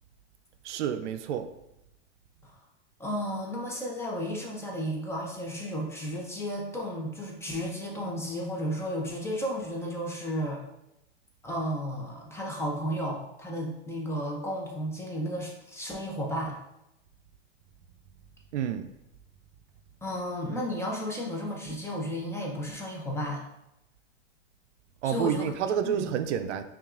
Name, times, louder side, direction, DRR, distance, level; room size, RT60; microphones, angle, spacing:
voice 1, 0.6-1.5 18.5-18.9 25.0-26.6, right 9 dB, 80° right, 9 dB, 0.5 m, -29 dB
voice 2, 3.0-10.6 11.4-16.6 20.0-23.4 25.0-25.5 25.8-26.0, equal, 10° left, -2 dB, 0.6 m, -33 dB
5.6 x 2.4 x 2.4 m, 0.86 s
hypercardioid pair, 130°, 35 cm